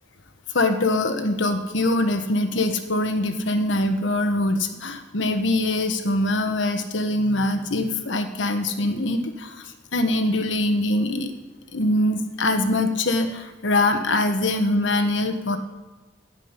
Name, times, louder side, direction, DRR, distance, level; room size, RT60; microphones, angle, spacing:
voice 1, 0.5-11.3 11.7-15.6, left 2 dB, 75° left, 8 dB, 1.3 m, -23 dB
12.5 x 7.5 x 9.7 m, 1.2 s
head